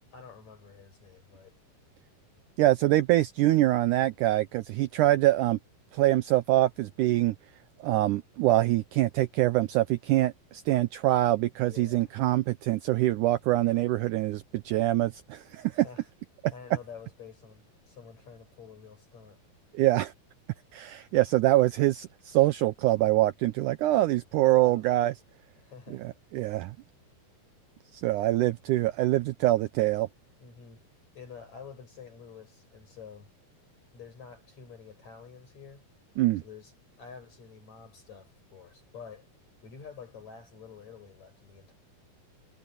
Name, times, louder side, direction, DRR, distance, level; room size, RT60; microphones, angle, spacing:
voice 1, 0.1-1.6 11.7-12.1 15.7-16.1 16.5-19.4 24.4-24.9 25.6-26.0 30.4-30.8 31.1-33.3 33.9-35.8 36.4-36.7 37.0-39.3 39.6-41.7, left 6 dB, 50° left, 7.8 m, -48 dB
voice 2, 2.6-5.6 5.9-7.4 7.8-15.9 19.7-20.1 20.7-25.1 26.0-26.7 27.9-30.1 36.2-36.4, right 16 dB, 80° right, 1.8 m, -24 dB
omnidirectional pair, 4.2 m